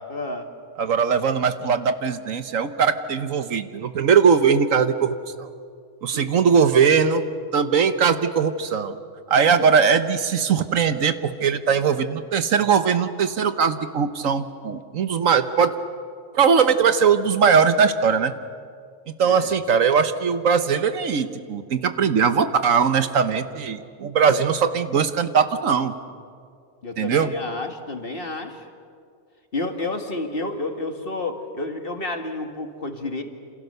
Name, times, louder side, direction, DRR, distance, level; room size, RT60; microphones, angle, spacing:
voice 1, 0.1-0.5 6.1-6.5 9.5-9.7 19.2-19.5 26.8-28.6 29.5-33.2, left 2 dB, 40° left, 5 dB, 2.0 m, -30 dB
voice 2, 0.8-5.5 6.0-7.2 7.5-8.9 9.3-15.8 16.3-18.3 19.2-25.9 27.0-27.3, right 6 dB, 70° right, 10 dB, 1.4 m, -20 dB
28.0 x 27.5 x 6.7 m, 2.2 s
omnidirectional pair, 1.4 m